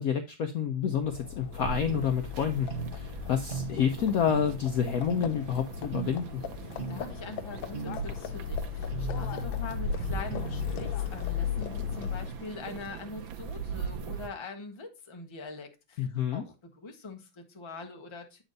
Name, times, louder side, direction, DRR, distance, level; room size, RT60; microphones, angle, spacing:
voice 1, 0.0-2.7 2.9-6.4 16.0-16.4, left 8 dB, 65° left, 0.9 m, -29 dB
Livestock farm animals working animals, 0.9-12.5, left 11 dB, 85° left, 1.4 m, -37 dB
sound 1, 1.5-14.3, right 5 dB, 85° right, 1.6 m, -40 dB
sound 2, 1.9-2.1 2.7-3.0 3.5-3.8 4.3-4.6 5.1-5.3 5.9-6.1 6.8-7.0 7.7-8.0 8.9-9.6 10.3-11.0, right 5 dB, 40° right, 1.1 m, -37 dB
voice 2, 6.7-18.4, left 3 dB, 20° left, 0.8 m, -43 dB
8.1 x 4.4 x 3.9 m
omnidirectional pair, 2.1 m